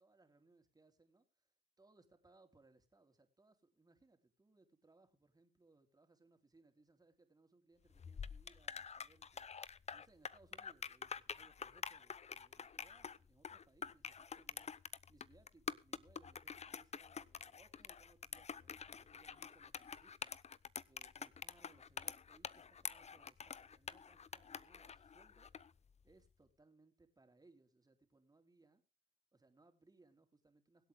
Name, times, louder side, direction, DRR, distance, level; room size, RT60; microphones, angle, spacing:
voice 1, 0.0-1.5 1.8-20.3 20.9-25.5 26.0-28.8 29.3-30.9, right 3 dB, 20° right, 6 dB, 3.7 m, -69 dB
sound 1, 7.9-25.7, left 6 dB, 35° left, 0.7 m, -47 dB
24.0 x 8.3 x 3.6 m, 0.31 s
cardioid pair, 90°, 20 cm